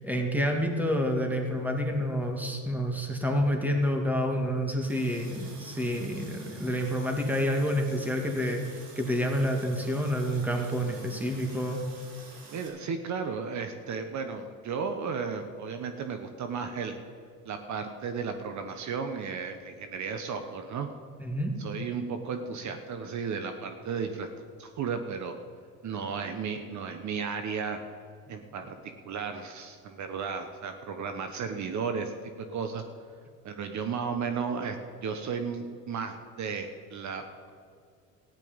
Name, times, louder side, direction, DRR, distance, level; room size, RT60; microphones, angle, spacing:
voice 1, 0.0-11.8 21.2-21.5, equal, 5° right, 2 dB, 2.3 m, -28 dB
Water tap faucet, 4.8-12.7, right 3 dB, 75° right, 3.6 m, -50 dB
voice 2, 12.5-16.9 17.4-20.9 21.6-24.3 24.6-25.3 25.8-27.8 28.3-28.8 29.0-32.8 33.4-34.8 35.0-37.5, right 5 dB, 55° right, 7 dB, 1.1 m, -34 dB
14.5 x 10.5 x 5.2 m, 2.3 s
supercardioid pair, 85°, 35 cm